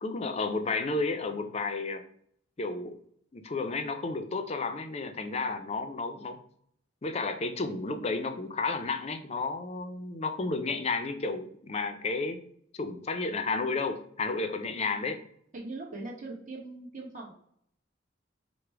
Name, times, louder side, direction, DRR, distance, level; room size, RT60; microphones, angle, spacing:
voice 1, 0.0-2.0 2.6-3.0 3.3-6.4 7.0-12.4 12.7-15.2, left 3 dB, 35° left, 8 dB, 0.4 m, -32 dB
voice 2, 15.5-17.3, right 2 dB, 40° right, -2 dB, 1.0 m, -40 dB
4.9 x 2.1 x 4.5 m, 0.66 s
head